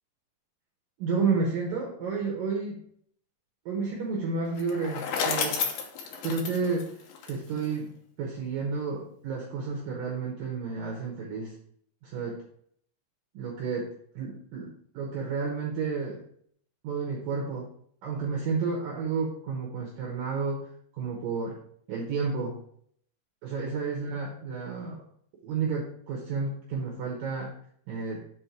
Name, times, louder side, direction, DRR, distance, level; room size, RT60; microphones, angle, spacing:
voice 1, 1.0-2.8 3.7-5.7 6.2-7.0 7.3-11.5 12.0-12.4 13.3-13.9 14.2-16.2 16.8-17.7 18.0-20.7 20.9-21.6 21.9-22.6 23.4-25.1 25.4-27.5 27.9-28.2, right 4 dB, 75° right, -1 dB, 2.1 m, -31 dB
Bicycle, 4.5-7.7, left 6 dB, 70° left, 2.3 m, -32 dB
7.4 x 4.4 x 4.5 m, 0.64 s
omnidirectional pair, 5.3 m